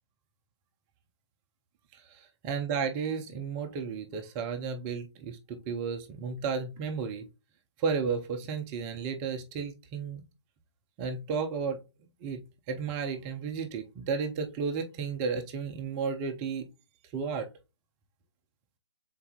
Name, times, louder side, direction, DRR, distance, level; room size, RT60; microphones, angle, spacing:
voice 1, 1.9-7.3 7.8-10.2 11.0-11.8 12.2-16.7 17.1-17.5, right 5 dB, 10° right, 0.3 m, -33 dB
5.4 x 3.9 x 2.2 m
figure-of-eight pair, 135°, 14 cm